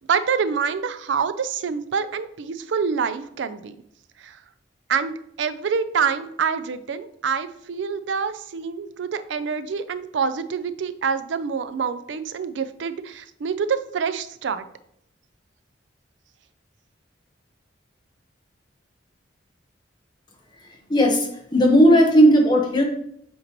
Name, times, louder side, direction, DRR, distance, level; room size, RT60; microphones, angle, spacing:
voice 1, 0.1-3.7 4.2-4.4 4.9-14.6, right 6 dB, 75° right, 12 dB, 0.4 m, -26 dB
voice 2, 20.6-22.8, equal, 25° left, 1 dB, 1.1 m, -16 dB
7.8 x 4.3 x 3.0 m, 0.71 s
head